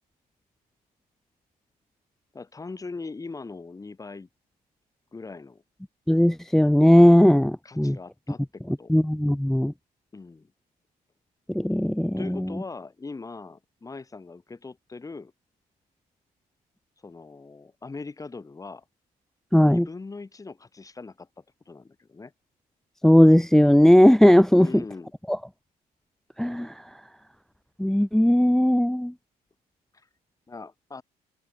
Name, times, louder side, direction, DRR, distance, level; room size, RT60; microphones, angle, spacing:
voice 1, 2.3-4.3 5.1-5.6 7.6-8.9 10.1-10.5 12.2-15.3 17.0-18.8 19.5-22.3 24.5-25.1 29.9-30.1 30.5-31.0, left 3 dB, 20° left, 2.8 m, -40 dB
voice 2, 6.1-8.0 8.9-9.7 11.5-12.5 19.5-19.9 23.0-24.8 25.3-25.4 26.4-26.8 27.8-29.1, equal, ahead, 0.5 m, -18 dB
cardioid pair, 110°, 17 cm